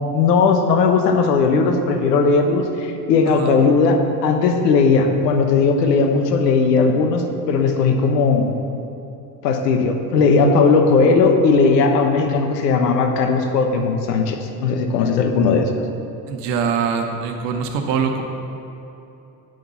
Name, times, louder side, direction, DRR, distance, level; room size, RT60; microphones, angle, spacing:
voice 1, 0.0-8.5 9.4-15.7, left 4 dB, 80° left, 5 dB, 1.1 m, -17 dB
voice 2, 3.3-3.6 16.3-18.2, right 6 dB, 75° right, 5 dB, 1.2 m, -23 dB
9.2 x 6.0 x 5.6 m, 2.9 s
hypercardioid pair, 70°, 48 cm